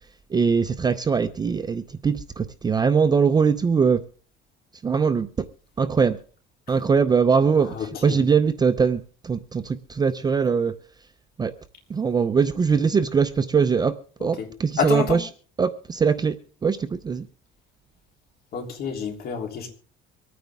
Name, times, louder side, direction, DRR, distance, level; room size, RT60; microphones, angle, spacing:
voice 1, 0.3-4.0 4.8-5.3 5.8-6.2 6.7-10.7 11.4-11.5 11.9-15.3 15.6-17.3, right 5 dB, 20° right, 0.6 m, -22 dB
voice 2, 7.6-8.2 14.4-14.5 14.8-15.2 18.5-19.7, left 6 dB, 50° left, 3.4 m, -28 dB
24.5 x 9.3 x 3.6 m
cardioid pair, 145°, 21 cm